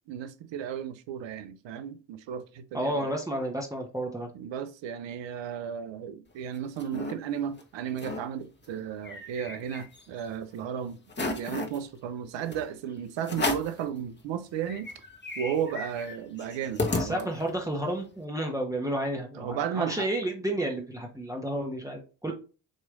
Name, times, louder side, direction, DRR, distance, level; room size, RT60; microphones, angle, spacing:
voice 1, 0.1-3.1 4.3-14.9 15.4-17.3 19.3-20.1, right 8 dB, 60° right, 0.9 m, -34 dB
voice 2, 2.7-4.3 16.9-22.3, right 1 dB, 5° right, 1.2 m, -31 dB
sound 1, 6.3-7.1 7.6-7.7 7.9-8.2 8.6-10.2 10.6-10.7 11.1-11.8 12.5-12.6 13.2-13.8 14.3-14.4 14.6-17.6, left 2 dB, 20° left, 1.3 m, -34 dB
6.7 x 3.1 x 2.5 m
hypercardioid pair, 50°, 49 cm